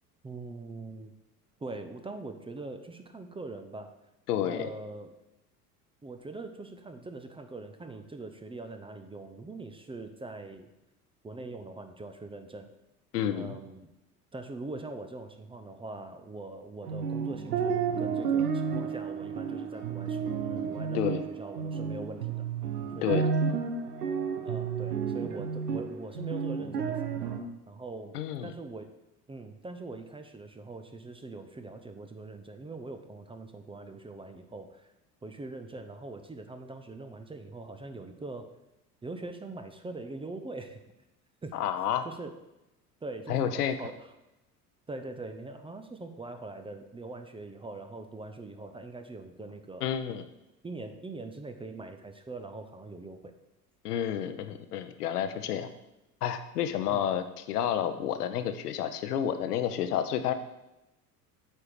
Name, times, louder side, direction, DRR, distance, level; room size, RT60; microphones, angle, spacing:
voice 1, 0.2-1.1 1.6-3.9 4.4-5.1 6.0-10.7 11.2-12.7 13.3-13.9 14.3-22.4 23.0-23.3 24.4-28.9 29.3-34.9 35.2-38.5 39.0-40.8 41.4-41.5 42.0-42.3 43.0-44.1 44.9-49.9 50.6-53.3 56.9-57.1, right 3 dB, 10° right, 7 dB, 0.6 m, -42 dB
voice 2, 4.3-4.7 13.1-13.5 20.9-21.3 23.0-23.3 28.1-28.5 41.5-42.1 43.3-43.8 49.8-50.2 53.8-55.7 56.2-60.3, left 9 dB, 75° left, 10 dB, 0.8 m, -30 dB
sound 1, 16.8-27.4, right 6 dB, 75° right, 0.9 m, -31 dB
8.5 x 4.6 x 4.9 m, 0.93 s
figure-of-eight pair, 70°, 47 cm